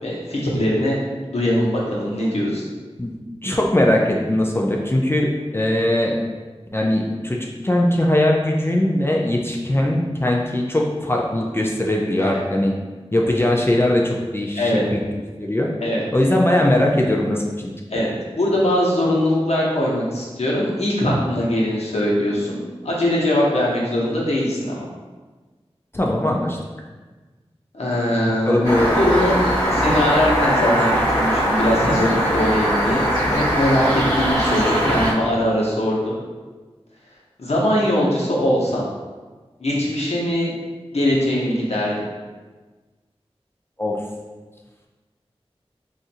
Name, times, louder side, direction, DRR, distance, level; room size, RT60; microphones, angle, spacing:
voice 1, 0.0-1.0 1.3-2.6 12.2-12.4 14.6-14.8 15.8-16.0 17.9-24.8 27.7-28.6 29.0-29.4 29.7-36.2 37.4-38.8 39.6-40.5 40.9-41.9, left 1 dB, 80° left, -5 dB, 0.8 m, -21 dB
voice 2, 3.4-6.2 6.7-12.7 13.1-15.0 15.4-15.7 16.1-17.4 25.9-26.6 28.5-29.0 43.8-44.0, left 1 dB, 20° left, -1 dB, 0.4 m, -20 dB
sound 1, 28.6-35.1, equal, 40° left, 1.3 m, -20 dB
2.6 x 2.5 x 4.1 m, 1.3 s
wide cardioid pair, 55°, 11 cm